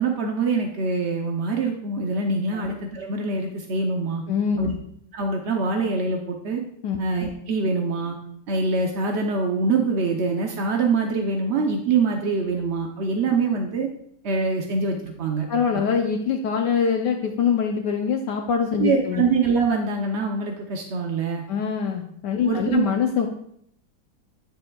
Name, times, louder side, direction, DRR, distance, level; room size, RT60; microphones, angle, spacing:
voice 1, 0.0-4.2 4.6-4.7 5.1-6.6 7.0-8.2 8.5-13.9 14.2-15.5 15.7-15.8 18.8-21.4 22.4-22.8, right 4 dB, 60° right, 2 dB, 0.7 m, -24 dB
voice 2, 4.3-4.7 6.8-7.0 15.5-19.2 21.5-23.3, left 6 dB, 70° left, 2 dB, 1.2 m, -24 dB
10.5 x 6.7 x 2.3 m, 0.70 s
omnidirectional pair, 2.0 m